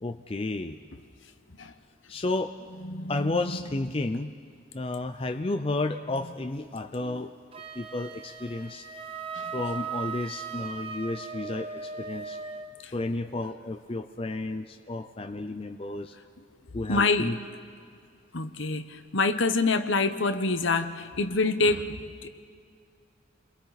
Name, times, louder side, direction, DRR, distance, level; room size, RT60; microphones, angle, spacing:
voice 1, 0.0-0.8 2.1-2.6 3.1-4.3 4.7-7.3 7.7-8.9 9.5-12.4 12.9-16.1 16.7-17.4, left 2 dB, 25° left, 7 dB, 0.5 m, -32 dB
voice 2, 2.8-3.3 7.0-7.2 9.4-9.5 12.8-12.9 16.9-17.4 18.3-22.3, left 3 dB, 70° left, 9 dB, 1.0 m, -26 dB
Wind instrument woodwind instrument, 7.5-12.7, right 5 dB, 30° right, 0.9 m, -38 dB
29.5 x 22.0 x 4.1 m, 2.2 s
head